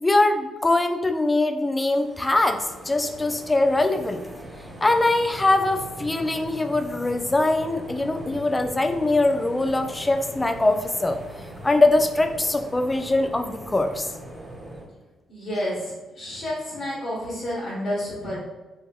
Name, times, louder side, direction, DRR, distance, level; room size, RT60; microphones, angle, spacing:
voice 1, 0.0-4.2 4.8-11.2 11.6-14.1, left 2 dB, 20° left, 7 dB, 0.3 m, -22 dB
sound 1, 1.8-14.9, equal, 20° right, 1.0 m, -40 dB
voice 2, 15.3-18.4, equal, 60° left, -10 dB, 1.2 m, -30 dB
3.2 x 2.6 x 2.3 m, 1.1 s
supercardioid pair, 60°, 0 cm